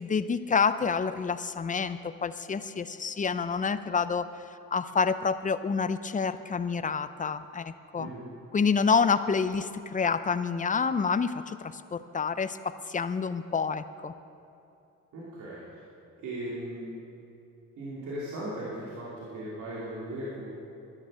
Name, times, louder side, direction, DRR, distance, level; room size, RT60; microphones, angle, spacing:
voice 1, 0.0-4.3 4.7-8.1 8.5-14.1, left 5 dB, 25° left, 12 dB, 0.5 m, -28 dB
voice 2, 15.1-15.8 16.2-16.9 17.8-20.4, right 1 dB, 80° right, -8 dB, 2.8 m, -37 dB
11.5 x 11.0 x 6.3 m, 2.7 s
cardioid pair, 90°, 30 cm